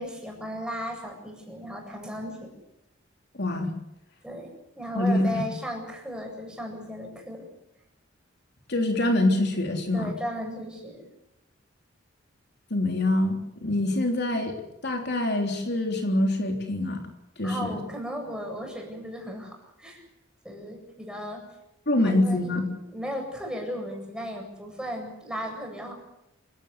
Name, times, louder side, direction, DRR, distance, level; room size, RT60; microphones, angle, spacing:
voice 1, 0.0-2.5 4.2-7.5 9.9-11.1 17.4-20.0 20.4-21.4 22.0-22.6 22.8-25.9, equal, 5° right, 1 dB, 7.9 m, -36 dB
voice 2, 3.3-3.7 4.9-5.5 8.7-10.1 12.7-14.6 14.8-17.0 17.4-17.8 21.9-22.7, left 1 dB, 60° left, 3 dB, 3.6 m, -25 dB
27.5 x 18.0 x 8.2 m, 0.87 s
head